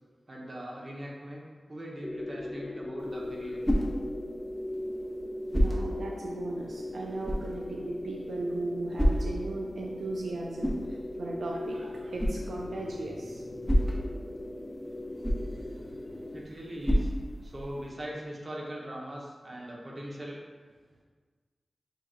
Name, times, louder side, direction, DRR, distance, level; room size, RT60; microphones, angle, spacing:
voice 1, 0.3-3.7 16.3-17.1 17.4-20.4, equal, 45° right, -3 dB, 1.1 m, -40 dB
sound 1, 2.0-16.4, left 1 dB, 35° left, 0.4 m, -39 dB
sound 2, 3.0-17.9, equal, 5° left, 0.8 m, -33 dB
voice 2, 5.5-13.7 15.1-16.4, right 2 dB, 90° right, -1 dB, 0.3 m, -38 dB
6.8 x 2.9 x 2.5 m, 1.5 s
cardioid pair, 45°, 0 cm